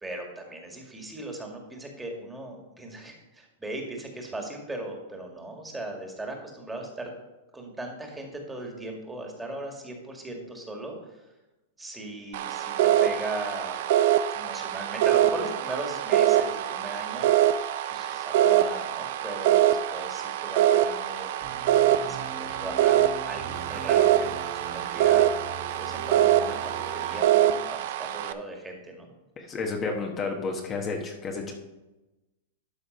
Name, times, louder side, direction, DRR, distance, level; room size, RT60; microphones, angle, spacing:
voice 1, 0.0-7.1 7.5-11.2 11.8-13.8 14.3-17.5 17.9-21.3 21.7-24.3 24.6-25.3 25.8-29.1, right 2 dB, 10° right, 1 dB, 2.0 m, -38 dB
sound 1, 12.3-28.3, right 12 dB, 60° right, 0.6 m, -24 dB
sound 2, 21.4-27.2, right 6 dB, 45° right, 1.3 m, -39 dB
voice 2, 29.4-31.5, left 4 dB, 30° left, 2 dB, 1.3 m, -31 dB
12.0 x 4.0 x 5.4 m, 1.0 s
hypercardioid pair, 115°, 0 cm